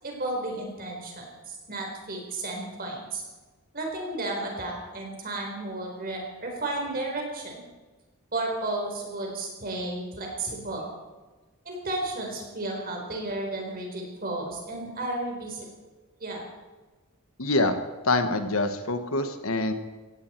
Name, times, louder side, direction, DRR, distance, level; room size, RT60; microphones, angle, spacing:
voice 1, 0.0-3.2 3.7-7.6 8.3-10.9 11.6-15.7 16.2-16.4, right 2 dB, 45° right, 0 dB, 4.3 m, -33 dB
voice 2, 17.4-17.8 18.0-19.7, left 2 dB, 70° left, 8 dB, 1.3 m, -25 dB
16.5 x 16.5 x 4.5 m, 1.3 s
head